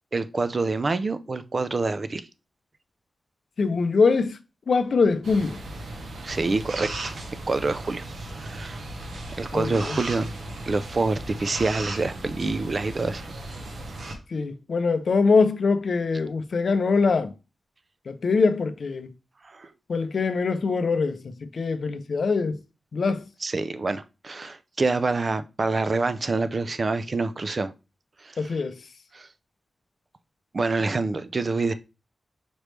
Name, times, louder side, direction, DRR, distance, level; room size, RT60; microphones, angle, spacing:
voice 1, 0.1-2.3 6.2-8.8 9.4-10.3 10.7-13.2 19.4-19.7 23.4-27.7 28.2-28.5 29.1-29.3 30.5-31.7, right 3 dB, 40° right, 0.4 m, -27 dB
voice 2, 3.6-4.4 4.7-5.6 9.5-10.0 14.3-17.3 18.1-19.1 19.9-22.6 22.9-23.3 28.4-28.8, left 4 dB, 60° left, 0.5 m, -23 dB
sound 1, 5.2-14.2, right 2 dB, 75° right, 0.9 m, -36 dB
5.2 x 3.1 x 3.2 m
wide cardioid pair, 120°, 0 cm